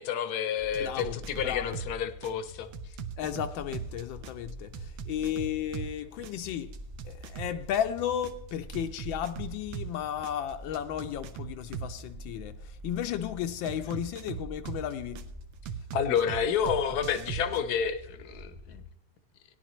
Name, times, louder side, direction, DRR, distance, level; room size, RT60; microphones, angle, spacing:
voice 1, 0.0-2.7 15.9-18.8, left 8 dB, 65° left, 1.1 m, -30 dB
sound 1, 0.6-18.9, equal, 30° right, 1.1 m, -46 dB
sound 2, 0.7-1.9 2.2-5.9 6.2-9.9 10.2-12.0 13.7-15.2 15.7-17.6, right 8 dB, 85° right, 1.5 m, -39 dB
voice 2, 0.8-1.8 3.2-6.7 7.1-15.2, left 10 dB, 85° left, 1.3 m, -34 dB
17.0 x 10.5 x 3.0 m
omnidirectional pair, 2.1 m